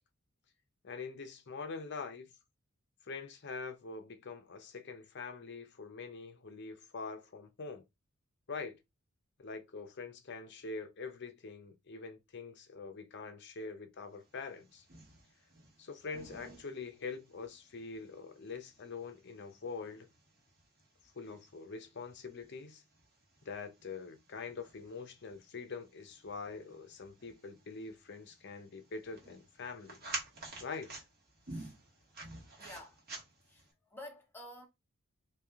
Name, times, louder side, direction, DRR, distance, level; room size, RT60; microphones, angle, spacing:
voice 1, 0.8-2.3 3.0-7.8 8.5-8.8 9.4-14.8 15.8-20.1 21.1-22.8 23.4-30.0 30.6-31.0, left 4 dB, 55° left, 0.7 m, -44 dB
sound 1, 14.3-33.7, right 2 dB, 50° right, 1.4 m, -51 dB
voice 2, 32.3-33.0 33.5-34.7, left 1 dB, 10° left, 1.0 m, -51 dB
3.4 x 2.6 x 3.5 m
head